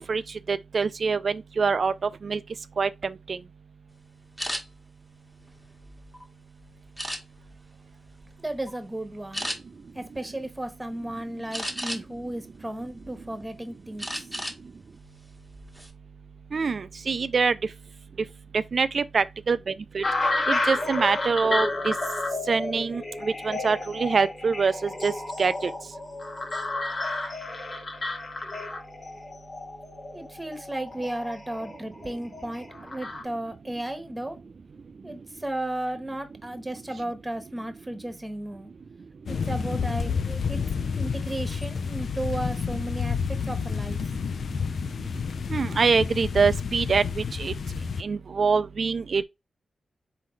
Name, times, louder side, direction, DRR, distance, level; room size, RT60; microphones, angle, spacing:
voice 1, 0.5-1.9 2.2-2.4 2.8-3.4 16.5-17.5 18.5-20.0 20.5-21.9 22.5-23.0 23.4-25.1 25.4-25.7 45.5-47.5 48.0-49.2, right 5 dB, 60° right, 0.3 m, -24 dB
sound 1, 4.4-4.6 5.3-6.2 7.0-7.6 8.1-8.3 8.7-8.8 9.3-9.6 11.5-12.2 12.7-13.5 14.0-14.6 14.9-15.1 15.5-15.9, equal, 5° left, 1.3 m, -33 dB
voice 2, 8.4-9.5 9.9-14.3 30.1-34.4 35.0-38.7 39.3-40.6 41.0-44.0, right 1 dB, 15° right, 1.2 m, -34 dB
sound 2, 20.0-33.2, left 2 dB, 50° left, 1.2 m, -31 dB
sound 3, 39.3-48.0, left 6 dB, 70° left, 0.4 m, -30 dB
4.2 x 3.8 x 3.1 m
cardioid pair, 70°, 0 cm